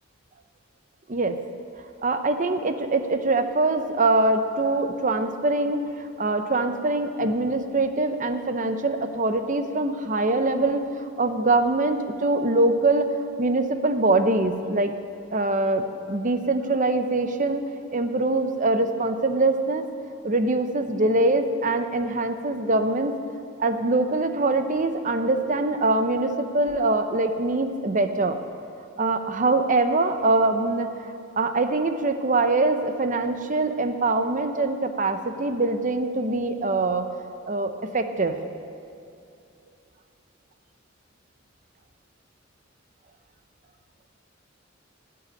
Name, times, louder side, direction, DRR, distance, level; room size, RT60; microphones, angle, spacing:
voice 1, 2.0-14.9 15.3-17.6 17.9-19.8 20.2-23.1 23.6-28.4 29.0-37.1 37.5-38.4, right 2 dB, 40° right, 8 dB, 0.8 m, -23 dB
13.0 x 7.8 x 9.9 m, 2.5 s
head